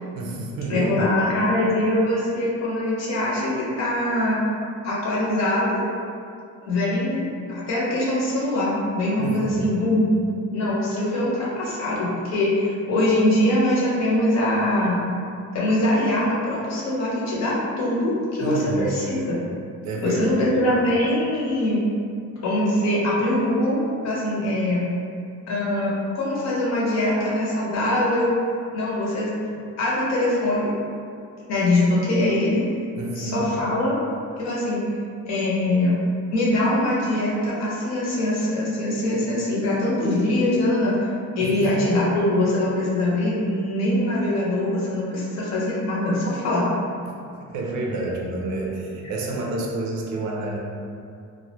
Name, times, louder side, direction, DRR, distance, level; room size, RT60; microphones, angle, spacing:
voice 1, 0.1-1.1 9.2-9.8 18.4-19.0 19.8-20.5 33.0-33.5 41.4-41.8 47.4-50.6, right 2 dB, 65° right, -2 dB, 0.5 m, -29 dB
voice 2, 0.7-4.4 4.8-5.8 6.6-10.1 10.5-15.0 15.5-19.3 20.0-21.8 22.4-23.8 24.0-24.8 25.5-28.3 28.7-29.3 29.8-30.7 31.5-32.6 33.1-34.0 34.4-34.8 35.3-36.0 36.3-41.0 41.4-46.7, left 1 dB, 60° left, -6 dB, 0.7 m, -23 dB
2.2 x 2.0 x 2.8 m, 2.4 s
cardioid pair, 150°, 30 cm